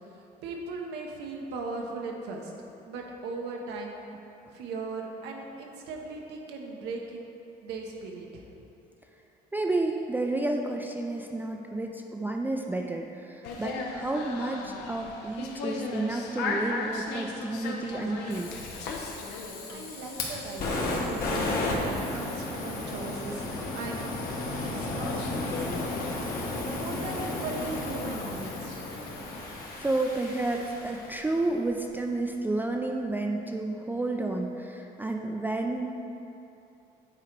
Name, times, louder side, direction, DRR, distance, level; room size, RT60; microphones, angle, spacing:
voice 1, 0.4-2.5 2.9-4.0 4.5-7.2 7.6-8.5 19.7-23.5 23.7-24.1 24.6-29.0, right 3 dB, 90° right, 0 dB, 1.0 m, -38 dB
voice 2, 9.5-18.5 29.8-35.9, right 2 dB, 10° right, 2 dB, 0.3 m, -31 dB
sound 1, 13.4-29.5, left 3 dB, 90° left, 0.8 m, -39 dB
Fire, 18.3-31.4, left 2 dB, 60° left, 1.4 m, -34 dB
8.6 x 3.9 x 4.6 m, 2.8 s
cardioid pair, 110°, 17 cm